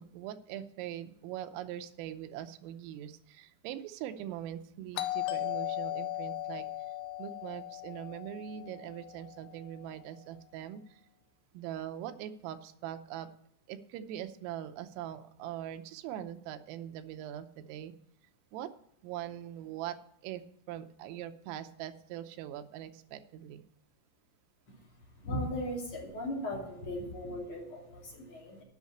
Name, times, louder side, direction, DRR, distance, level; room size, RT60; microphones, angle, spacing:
voice 1, 0.0-6.7 7.2-11.0 11.5-13.3 13.7-17.9 18.5-18.7 19.0-20.0 20.2-20.4 20.7-23.6, right 11 dB, 85° right, 9 dB, 3.4 m, -42 dB
Doorbell, 5.0-9.6, left 14 dB, 80° left, 2.9 m, -37 dB
voice 2, 24.9-28.6, left 1 dB, 35° left, -1 dB, 2.5 m, -38 dB
9.5 x 6.4 x 8.3 m, 0.71 s
omnidirectional pair, 5.8 m